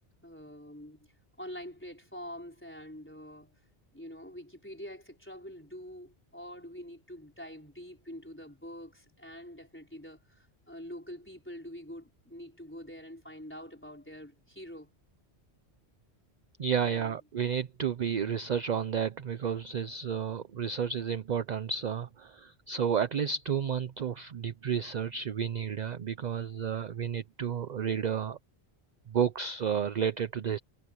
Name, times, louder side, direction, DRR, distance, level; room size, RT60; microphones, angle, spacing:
voice 1, 0.2-1.1 1.4-3.6 3.9-14.9 16.8-17.2, equal, 10° left, 4.2 m, -45 dB
voice 2, 16.6-28.4 29.1-30.6, right 7 dB, 50° right, 0.7 m, -31 dB
omnidirectional pair, 1.1 m